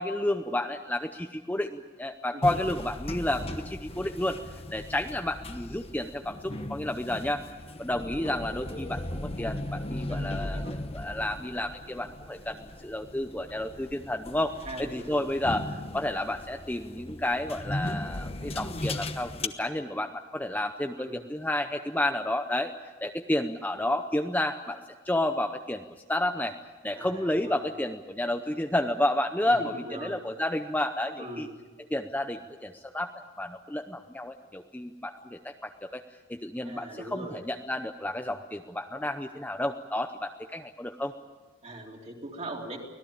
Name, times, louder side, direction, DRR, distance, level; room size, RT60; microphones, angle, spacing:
voice 1, 0.0-4.4 4.7-7.4 7.8-22.7 23.0-24.8 25.0-25.8 26.1-26.6 26.8-29.6 30.0-31.5 31.9-36.0 36.3-41.1, left 1 dB, 10° left, 6 dB, 0.7 m, -31 dB
sound 1, 2.4-19.5, left 1 dB, 30° left, 1.0 m, -37 dB
voice 2, 10.1-10.8 14.6-15.3 21.0-21.2 27.0-27.7 29.5-30.2 31.2-31.5 36.6-37.4 41.6-42.8, right 1 dB, 30° right, 0 dB, 3.6 m, -41 dB
24.5 x 18.0 x 8.7 m, 1.3 s
head